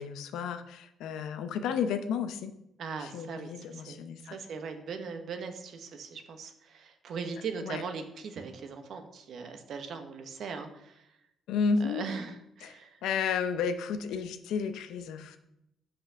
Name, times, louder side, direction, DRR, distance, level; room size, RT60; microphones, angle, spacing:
voice 1, 0.0-2.5 3.0-4.4 7.6-7.8 11.5-12.1 12.6-15.4, left 6 dB, 85° left, 9 dB, 0.6 m, -32 dB
voice 2, 2.8-4.0 4.3-11.0 11.8-13.0, right 5 dB, 65° right, 7 dB, 1.0 m, -40 dB
5.6 x 5.3 x 6.2 m, 0.82 s
cardioid pair, 90°, 0 cm